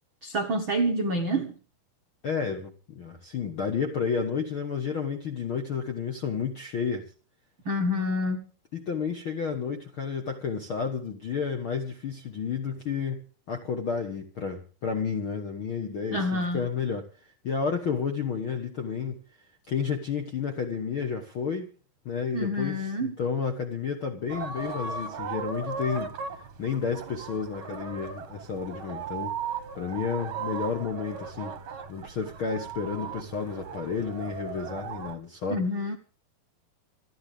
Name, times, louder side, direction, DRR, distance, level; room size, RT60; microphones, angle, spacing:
voice 1, 0.2-1.5 7.6-8.4 16.1-16.7 22.3-23.1 35.5-36.0, equal, 80° right, 1.1 m, -27 dB
voice 2, 2.2-7.1 8.7-17.0 17.4-19.2 19.7-21.7 22.0-29.4 29.7-31.6 31.9-35.6, left 6 dB, 65° left, 1.2 m, -31 dB
sound 1, 24.3-35.1, right 6 dB, 55° right, 1.6 m, -37 dB
27.5 x 11.0 x 3.5 m
omnidirectional pair, 4.5 m